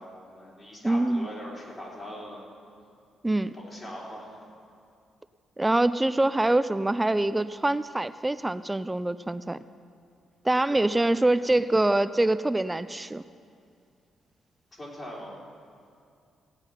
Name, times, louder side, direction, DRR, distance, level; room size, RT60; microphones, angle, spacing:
voice 1, 0.0-2.4 3.5-4.3 10.7-11.1 14.8-15.3, equal, 35° left, -4 dB, 3.8 m, -41 dB
voice 2, 0.8-1.3 3.2-3.5 5.6-9.6 10.4-13.2, right 2 dB, 15° right, 14 dB, 0.3 m, -24 dB
16.5 x 9.0 x 5.7 m, 2.4 s
cardioid pair, 90°, 0 cm